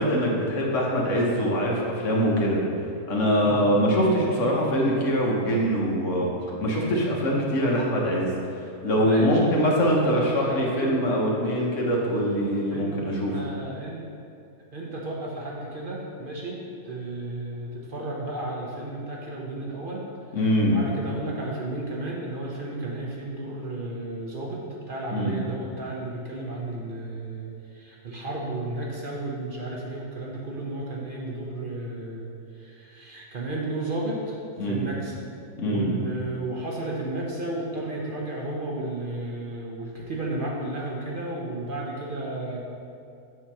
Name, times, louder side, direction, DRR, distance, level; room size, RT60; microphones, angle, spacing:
voice 1, 0.0-2.6 3.1-6.3 6.6-8.3 8.5-13.4 20.3-20.8 25.1-25.3 34.6-34.9 35.6-35.9, equal, 55° left, -3 dB, 1.3 m, -23 dB
voice 2, 9.0-11.0 12.7-13.0 13.3-14.0 14.7-20.0 20.7-32.3 32.6-35.2 35.6-42.6, right 2 dB, 45° right, -3 dB, 0.7 m, -33 dB
7.8 x 2.8 x 5.8 m, 2.5 s
omnidirectional pair, 1.6 m